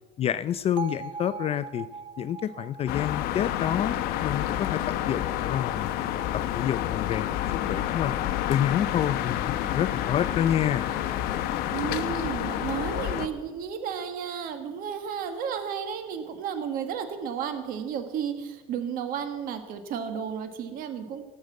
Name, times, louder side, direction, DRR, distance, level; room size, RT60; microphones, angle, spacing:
voice 1, 0.2-1.9 2.2-6.2 6.5-7.4 7.7-8.2 8.5-10.9, left 10 dB, 40° left, 13 dB, 0.4 m, -28 dB
Bell, 0.8-4.8, right 5 dB, 30° right, 0.5 m, -41 dB
sound 1, 2.9-13.3, left 12 dB, 70° left, 1.0 m, -29 dB
Screaming, 9.4-12.2, right 6 dB, 80° right, 1.7 m, -52 dB
voice 2, 11.7-21.2, right 7 dB, 60° right, 8 dB, 1.5 m, -33 dB
17.5 x 6.6 x 8.2 m, 1.3 s
cardioid pair, 125°, 16 cm